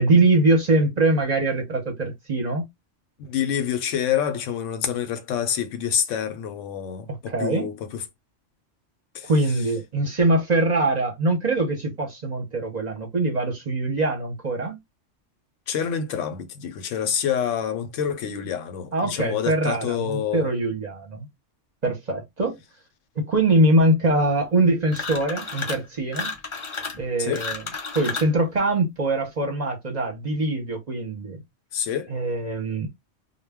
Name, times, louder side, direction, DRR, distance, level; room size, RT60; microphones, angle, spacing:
voice 1, 0.0-2.7 7.3-7.7 9.2-14.8 18.9-21.3 21.8-22.6 23.2-26.3 27.0-27.6 27.9-31.4 32.1-32.9, right 2 dB, 40° right, 0.7 m, -23 dB
voice 2, 3.2-8.0 9.1-9.3 15.7-20.5 27.2-27.5 31.7-32.1, left 9 dB, 80° left, 0.9 m, -27 dB
sound 1, 24.9-25.9 26.1-28.4, left 4 dB, 50° left, 0.3 m, -32 dB
2.2 x 2.1 x 3.3 m
omnidirectional pair, 1.3 m